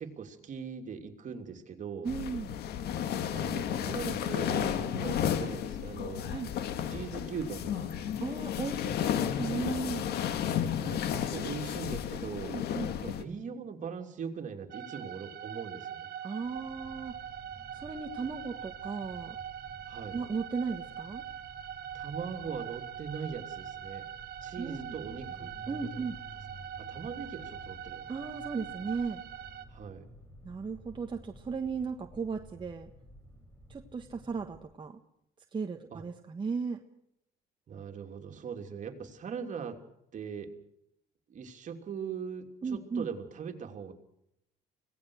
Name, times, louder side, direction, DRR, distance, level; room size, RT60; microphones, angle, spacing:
voice 1, 0.0-2.1 3.3-6.3 6.9-8.1 10.6-12.5 13.0-16.1 19.9-20.2 21.9-24.1 24.4-25.5 25.8-25.9 26.8-28.0 29.7-30.1 35.9-36.0 37.7-39.8 40.1-40.5 41.3-43.9, right 6 dB, 45° right, 5 dB, 3.1 m, -40 dB
voice 2, 2.0-2.6 6.3-6.5 8.2-10.1 12.5-12.9 16.2-17.2 17.7-19.4 20.1-21.2 24.6-24.9 25.7-26.2 28.1-29.2 30.4-32.9 33.7-35.0 35.5-36.8 42.6-43.1, right 5 dB, 30° right, 4 dB, 1.5 m, -36 dB
sound 1, 2.1-13.2, left 9 dB, 70° left, 2.0 m, -33 dB
sound 2, 14.7-29.7, right 10 dB, 65° right, 1.5 m, -43 dB
sound 3, 16.4-34.7, equal, 15° left, 5.8 m, -52 dB
25.0 x 18.0 x 6.5 m, 0.78 s
cardioid pair, 110°, 17 cm